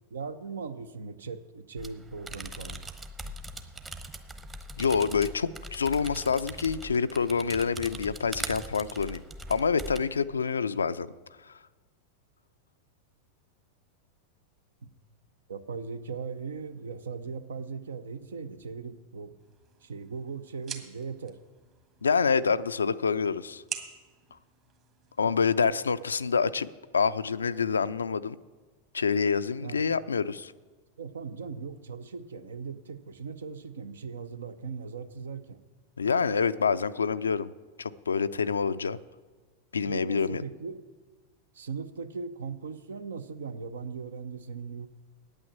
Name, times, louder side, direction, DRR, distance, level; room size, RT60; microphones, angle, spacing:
voice 1, 0.1-2.8 14.8-14.9 15.5-19.3 19.8-21.4 25.2-25.5 29.6-29.9 31.0-35.6 39.9-40.8 41.5-44.9, right 5 dB, 65° right, 12 dB, 0.7 m, -39 dB
sound 1, 1.8-10.0, right 1 dB, 15° right, 0.9 m, -41 dB
voice 2, 4.8-9.2 9.5-11.1 11.4-11.6 22.0-23.6 25.2-26.7 26.9-28.4 28.9-30.5 36.0-37.5 37.8-39.0 39.7-40.4, left 5 dB, 75° left, 15 dB, 0.4 m, -27 dB
sound 2, 19.4-25.4, right 8 dB, 35° right, 1.6 m, -46 dB
9.0 x 8.8 x 8.5 m, 1.4 s
figure-of-eight pair, 90°, 0 cm